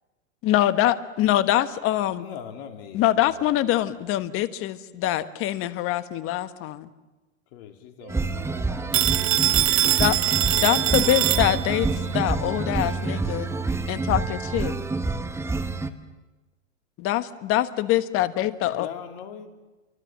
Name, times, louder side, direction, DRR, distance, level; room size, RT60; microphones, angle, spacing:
voice 1, 0.4-2.2 2.9-6.9 10.0-10.2 10.5-11.9 12.1-13.5 13.9-14.7 17.0-18.9, left 13 dB, 35° left, 13 dB, 1.4 m, -24 dB
voice 2, 2.2-3.4 7.5-8.5 12.4-14.1 18.6-19.5, left 8 dB, 50° left, 5 dB, 3.4 m, -42 dB
voice 3, 8.0-10.2 10.5-10.9 11.5-13.2 14.1-14.9, right 4 dB, 55° right, 0 dB, 6.3 m, -50 dB
sound 1, 8.1-15.9, right 3 dB, 5° right, 1.2 m, -27 dB
Telephone, 8.9-11.9, right 13 dB, 75° right, 0.9 m, -23 dB
27.5 x 24.5 x 7.5 m, 1.1 s
hypercardioid pair, 120°, 38 cm